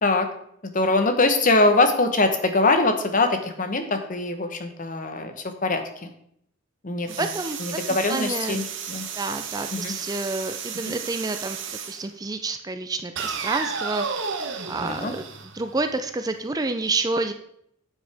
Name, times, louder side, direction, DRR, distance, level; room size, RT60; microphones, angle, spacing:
voice 1, 0.6-6.1 6.8-7.3 7.6-9.1 9.7-9.9 10.8-11.0 14.8-15.1, left 2 dB, 40° left, 7 dB, 1.0 m, -23 dB
sound 1, 7.1-12.0 13.2-16.1, right 6 dB, 60° right, 1.0 m, -33 dB
voice 2, 7.2-7.6 8.1-8.6 9.2-11.6 11.9-14.1 14.7-15.2 15.5-17.3, right 3 dB, 20° right, 7 dB, 0.4 m, -28 dB
8.9 x 7.6 x 3.4 m, 0.71 s
head